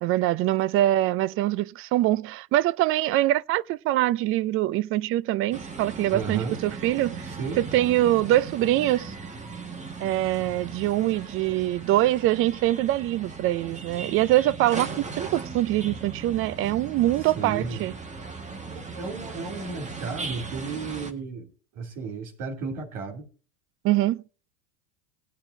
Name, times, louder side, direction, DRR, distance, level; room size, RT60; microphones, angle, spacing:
voice 1, 0.0-9.1 10.0-17.9 23.8-24.2, right 15 dB, 35° right, 0.5 m, -24 dB
sound 1, 5.5-21.1, right 4 dB, 15° right, 1.7 m, -38 dB
voice 2, 6.1-6.6 7.2-7.6 17.2-17.8 18.3-18.4 18.7-23.3, right 5 dB, 55° right, 2.9 m, -34 dB
19.5 x 8.7 x 2.7 m
hypercardioid pair, 100°, 40 cm